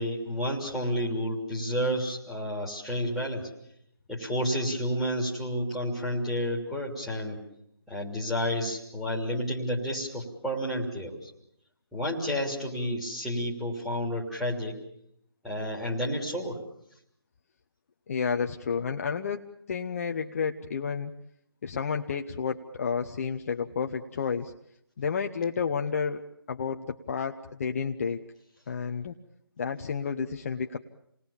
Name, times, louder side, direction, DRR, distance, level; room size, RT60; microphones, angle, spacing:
voice 1, 0.0-3.5 4.1-7.4 7.9-11.3 11.9-14.8 15.4-16.6, equal, ahead, -5 dB, 3.2 m, -30 dB
voice 2, 18.1-19.4 19.7-21.1 21.6-24.5 25.0-26.2 26.5-28.2 28.7-29.1 29.6-30.8, left 6 dB, 35° left, 4 dB, 0.9 m, -31 dB
28.5 x 19.5 x 7.2 m, 0.73 s
figure-of-eight pair, 160°, 13 cm